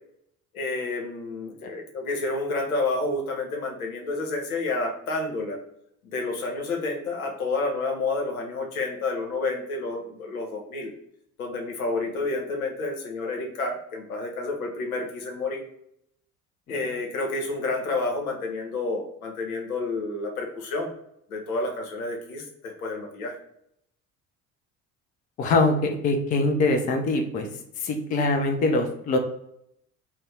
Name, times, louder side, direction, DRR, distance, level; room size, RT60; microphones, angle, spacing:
voice 1, 0.5-5.6 6.0-10.9 11.4-15.6 16.7-20.9 21.3-23.3, left 3 dB, 75° left, 1 dB, 0.8 m, -29 dB
voice 2, 25.4-27.5 27.8-29.2, left 2 dB, 20° left, 4 dB, 0.3 m, -23 dB
2.6 x 2.1 x 3.2 m, 0.75 s
figure-of-eight pair, 60°, 43 cm